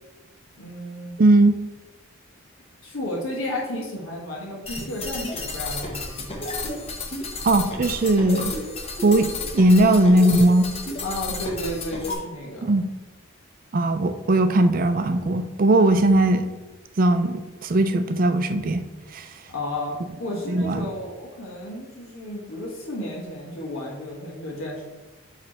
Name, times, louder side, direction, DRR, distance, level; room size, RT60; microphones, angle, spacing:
voice 1, 0.6-1.2 2.8-6.5 11.0-12.7 19.5-19.9 20.2-24.8, left 1 dB, 85° left, -4 dB, 1.4 m, -32 dB
voice 2, 1.2-1.6 7.4-8.5 9.0-10.7 12.6-12.9 13.7-16.5 17.0-18.8 19.1-19.3 20.5-20.8, right 1 dB, 40° right, 9 dB, 0.4 m, -19 dB
sound 1, 4.6-12.1, left 2 dB, 30° left, 0.9 m, -32 dB
7.6 x 3.3 x 4.2 m, 1.1 s
head